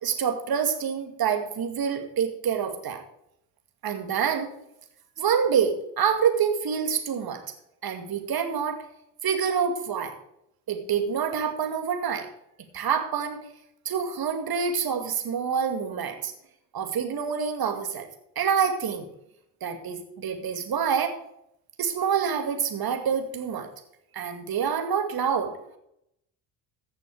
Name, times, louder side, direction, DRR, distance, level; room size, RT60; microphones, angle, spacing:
voice 1, 0.0-3.0 3.8-4.5 5.2-7.4 7.8-8.8 9.2-10.2 10.7-12.3 12.7-13.5 13.8-16.3 16.7-18.1 18.4-19.1 19.6-21.2 21.8-23.7 24.1-25.5, right 7 dB, 50° right, 5 dB, 2.4 m, -27 dB
15.0 x 6.8 x 4.9 m, 0.76 s
hypercardioid pair, 50°, 48 cm